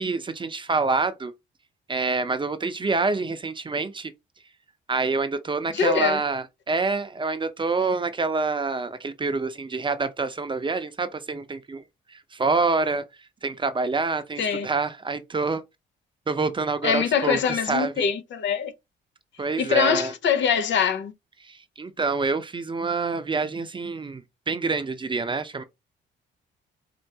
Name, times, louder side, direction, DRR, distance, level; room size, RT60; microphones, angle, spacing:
voice 1, 0.0-1.3 1.9-4.1 4.9-15.6 16.3-18.1 19.4-20.1 21.4-25.6, right 4 dB, 25° right, 0.6 m, -27 dB
voice 2, 5.7-6.2 14.4-14.7 16.8-18.7 19.6-21.1, left 7 dB, 65° left, 0.7 m, -23 dB
4.5 x 2.5 x 2.8 m
cardioid pair, 90°, 20 cm